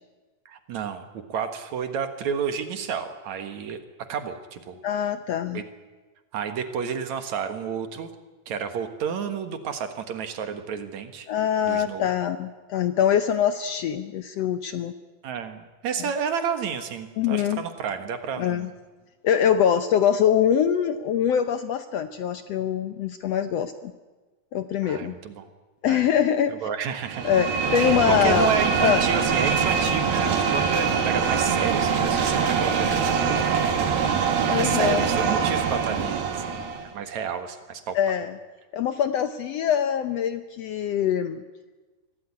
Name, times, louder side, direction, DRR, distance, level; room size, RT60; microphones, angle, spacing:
voice 1, 0.5-1.0 1.3-3.8 4.1-4.8 5.5-5.6 6.3-8.1 8.5-11.3 11.6-12.1 15.2-18.7 24.8-25.5 25.8-26.1 26.5-27.2 27.7-34.1 34.6-36.7 36.9-38.0, right 7 dB, 60° right, 8 dB, 2.7 m, -31 dB
voice 2, 4.8-5.6 11.3-14.9 17.2-17.6 18.4-18.7 19.2-23.9 24.5-25.1 25.8-26.5 27.2-28.5 28.8-29.0 34.5-35.1 37.9-38.3 38.7-41.4, left 9 dB, 80° left, 10 dB, 1.5 m, -23 dB
sound 1, 27.1-36.9, right 6 dB, 85° right, 3.9 m, -23 dB
24.5 x 16.5 x 9.8 m, 1.3 s
omnidirectional pair, 3.9 m